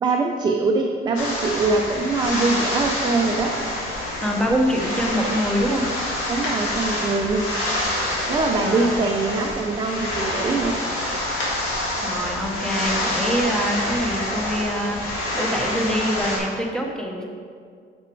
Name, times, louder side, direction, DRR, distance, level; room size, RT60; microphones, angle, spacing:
voice 1, 0.0-3.5 6.3-7.5 8.3-10.8, right 3 dB, 20° right, 2 dB, 0.4 m, -23 dB
sound 1, 1.1-16.4, left 1 dB, 85° left, 1.9 m, -27 dB
voice 2, 4.2-5.9 8.6-8.9 12.0-17.2, equal, 5° left, 0 dB, 0.8 m, -25 dB
6.3 x 6.0 x 4.6 m, 2.1 s
cardioid pair, 160°, 21 cm